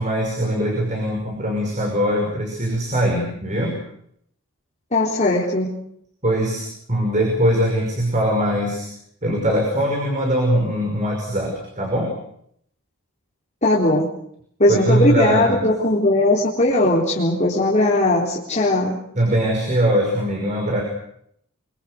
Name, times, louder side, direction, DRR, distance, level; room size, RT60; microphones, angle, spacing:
voice 1, 0.0-3.8 6.2-8.9 9.2-12.1 14.7-15.7 19.2-20.8, equal, 35° right, 1 dB, 5.8 m, -21 dB
voice 2, 4.9-5.7 13.6-14.1 14.6-19.0, left 1 dB, 35° left, -5 dB, 4.0 m, -18 dB
25.5 x 24.5 x 6.7 m, 0.70 s
head